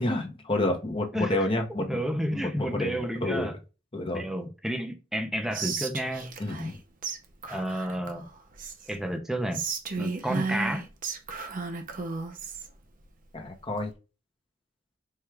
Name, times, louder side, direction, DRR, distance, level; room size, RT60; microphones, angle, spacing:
voice 1, 0.0-2.0 2.3-3.5 3.9-4.2 6.4-6.8 13.3-13.9, left 1 dB, 25° left, 0.8 m, -29 dB
voice 2, 1.1-1.5 1.9-3.6 4.1-6.4 7.5-8.3 8.9-9.6 10.0-10.8, right 1 dB, ahead, 0.5 m, -31 dB
Whispering, 5.5-6.8 7.0-7.2 7.4-9.0 9.5-12.7, right 4 dB, 45° right, 0.6 m, -34 dB
4.6 x 2.3 x 3.3 m
head